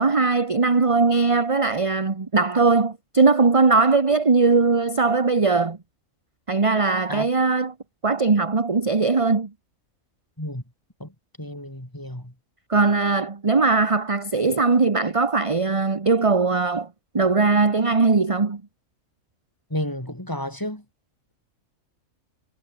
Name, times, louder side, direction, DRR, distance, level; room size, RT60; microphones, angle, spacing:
voice 1, 0.0-5.8 6.5-7.7 8.0-9.5 12.7-16.9 17.1-18.6, right 4 dB, 25° right, 1.2 m, -20 dB
voice 2, 11.4-12.3 19.7-20.8, left 1 dB, 15° left, 4.4 m, -31 dB
omnidirectional pair, 1.5 m